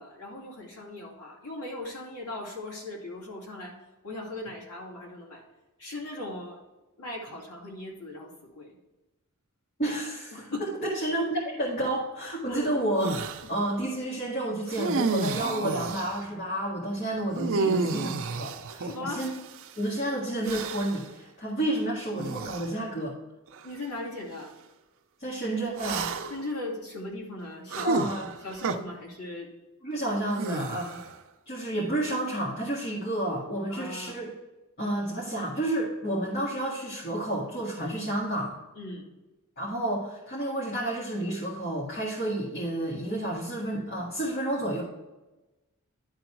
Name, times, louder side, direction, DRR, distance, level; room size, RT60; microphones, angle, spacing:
voice 1, 0.0-3.8 4.0-5.4 5.8-6.6 7.0-8.7 10.3-10.7 12.5-12.7 13.4-13.5 17.6-17.8 18.8-19.3 23.6-24.5 26.3-28.0 28.4-29.5 30.3-30.6 33.7-34.2 38.7-39.1, left 2 dB, 85° left, -3 dB, 2.5 m, -38 dB
voice 2, 9.8-10.5 10.8-13.2 13.5-19.3 19.8-23.2 25.2-26.1 27.8-28.3 29.8-31.0 31.5-34.3 34.8-38.6 39.6-44.8, right 1 dB, 45° left, -6 dB, 2.0 m, -30 dB
sound 1, 13.0-13.5 14.7-16.2 17.4-19.7 20.4-21.1 22.2-22.7 23.5-23.7 25.8-26.5 27.7-28.8 30.3-31.2, right 4 dB, 60° right, 0.6 m, -31 dB
11.5 x 3.9 x 4.6 m, 1.1 s
head